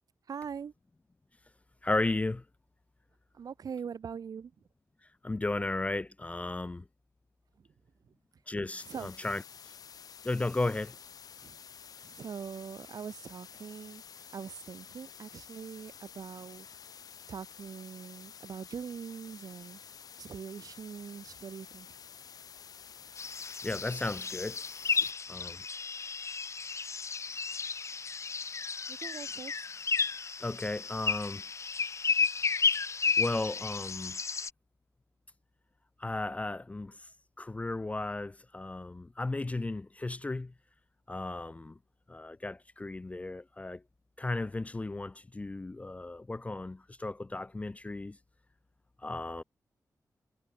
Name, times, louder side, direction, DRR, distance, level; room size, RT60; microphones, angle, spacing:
voice 1, 0.3-0.7 3.3-4.5 7.6-7.7 8.0-8.1 8.9-9.1 11.4-11.6 12.0-16.8 17.3-19.8 20.2-21.9 28.9-29.6, right 7 dB, 80° right, 3.6 m, -42 dB
voice 2, 1.8-2.4 5.2-6.9 8.5-9.4 10.2-11.0 23.6-24.6 25.3-25.6 30.4-31.4 33.2-34.2 36.0-37.1 37.4-40.5 41.1-41.8 42.1-43.8 44.2-48.2 49.0-49.4, left 2 dB, 20° left, 0.3 m, -35 dB
sound 1, 8.8-25.1, left 7 dB, 80° left, 1.0 m, -51 dB
sound 2, 23.2-34.5, left 5 dB, 50° left, 0.9 m, -33 dB
cardioid pair, 80°, 6 cm